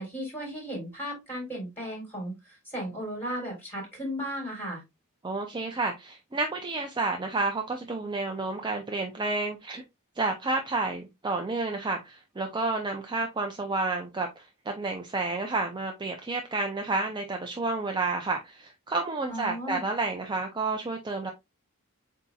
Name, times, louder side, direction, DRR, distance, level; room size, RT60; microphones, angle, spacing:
voice 1, 0.0-4.8 19.3-19.8, equal, 10° left, 3.3 m, -35 dB
voice 2, 5.2-9.8 10.2-21.3, right 3 dB, 20° right, 0.5 m, -30 dB
7.8 x 2.8 x 2.3 m
head